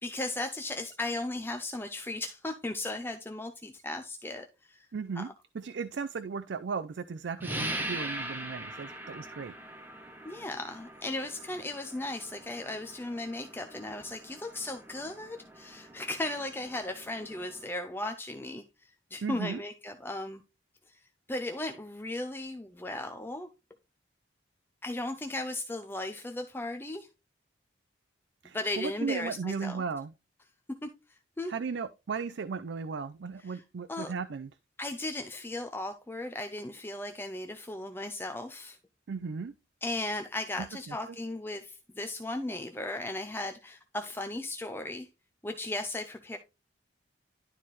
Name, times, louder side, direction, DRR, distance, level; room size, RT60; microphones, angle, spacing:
voice 1, 0.0-4.9 5.1-5.3 10.2-20.4 20.9-21.0 21.3-23.5 24.8-27.1 28.5-29.8 30.8-31.5 33.4-33.6 33.9-34.1 34.8-38.8 39.8-45.1 45.4-46.4, left 2 dB, 10° left, 0.5 m, -36 dB
voice 2, 4.9-5.3 5.5-9.5 19.2-19.6 28.4-30.1 31.5-34.5 39.1-39.5 40.6-41.0, right 5 dB, 65° right, 0.4 m, -36 dB
sound 1, 7.4-17.7, right 1 dB, 10° right, 0.9 m, -42 dB
11.5 x 4.2 x 3.1 m
head